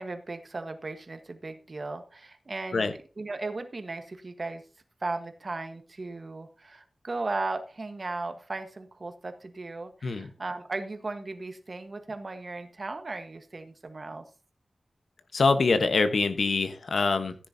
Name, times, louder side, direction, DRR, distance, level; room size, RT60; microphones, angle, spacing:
voice 1, 0.0-4.6 5.0-14.2, right 3 dB, 45° right, 7 dB, 1.4 m, -36 dB
voice 2, 15.3-17.4, left 4 dB, 80° left, 10 dB, 1.2 m, -24 dB
14.5 x 10.0 x 2.8 m, 0.33 s
wide cardioid pair, 105°, 0 cm